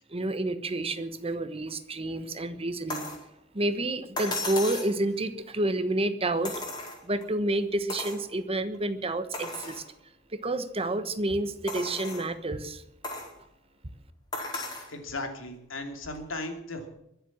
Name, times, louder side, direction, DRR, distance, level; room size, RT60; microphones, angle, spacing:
voice 1, 0.1-3.0 3.5-6.5 7.0-9.8 10.3-12.8, right 1 dB, 30° right, 11 dB, 1.2 m, -29 dB
sound 1, 2.9-3.2 4.2-5.0 6.4-7.2 7.9-8.2 8.7-8.8 9.3-9.8 10.4-10.5 11.7-12.3 13.0-13.3 14.3-14.9 16.2-16.3, left 2 dB, 20° left, 4.4 m, -35 dB
voice 2, 14.9-16.9, left 2 dB, 80° left, 4 dB, 3.0 m, -36 dB
23.0 x 7.8 x 7.4 m, 0.79 s
head